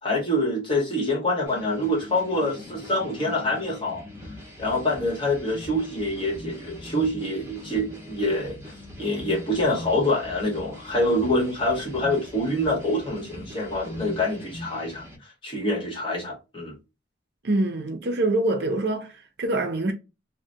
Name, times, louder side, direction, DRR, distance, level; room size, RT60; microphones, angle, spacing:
voice 1, 0.0-4.0 4.6-15.0 15.4-16.7, left 1 dB, 25° left, 1.1 m, -26 dB
sound 1, 1.5-15.2, left 1 dB, 15° right, 0.8 m, -41 dB
voice 2, 17.4-19.9, right 2 dB, 55° right, 0.5 m, -25 dB
3.8 x 2.1 x 2.6 m
head